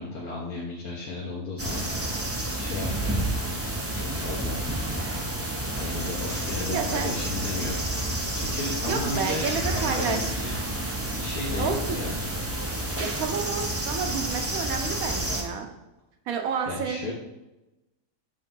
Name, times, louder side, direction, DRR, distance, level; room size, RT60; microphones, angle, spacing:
voice 1, 0.0-1.8 2.6-3.2 3.9-4.6 5.8-7.9 8.3-10.6 11.1-12.1 16.7-17.1, left 3 dB, 65° left, -5 dB, 1.6 m, -34 dB
sound 1, 1.6-15.4, right 1 dB, 15° right, 0.4 m, -30 dB
voice 2, 6.7-7.1 8.9-10.4 11.6-12.0 13.0-15.7 16.3-17.1, right 6 dB, 65° right, 4 dB, 1.3 m, -30 dB
7.5 x 3.3 x 5.4 m, 0.97 s
omnidirectional pair, 1.7 m